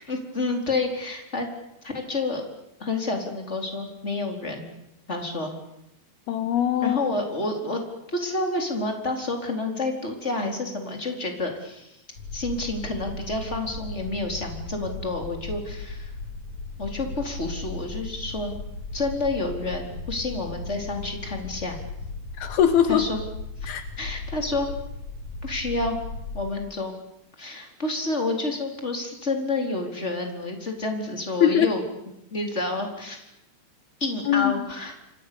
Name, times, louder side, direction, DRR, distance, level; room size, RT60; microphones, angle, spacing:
voice 1, 0.1-1.5 1.8-2.4 2.8-4.7 5.1-5.5 6.8-7.8 8.1-11.9 12.3-16.1 16.8-18.5 18.9-21.8 22.9-23.2 23.6-24.7 25.4-26.0 26.3-26.9 27.4-31.8 32.3-33.3 34.0-35.0, left 2 dB, 15° left, 3 dB, 4.1 m, -29 dB
voice 2, 6.3-7.0 22.4-23.1 23.7-23.9 31.4-31.7 34.3-34.7, left 9 dB, 75° left, 10 dB, 2.8 m, -21 dB
sound 1, 12.2-26.4, left 3 dB, 40° left, 8.3 m, -36 dB
28.5 x 25.0 x 7.1 m, 0.85 s
omnidirectional pair, 4.9 m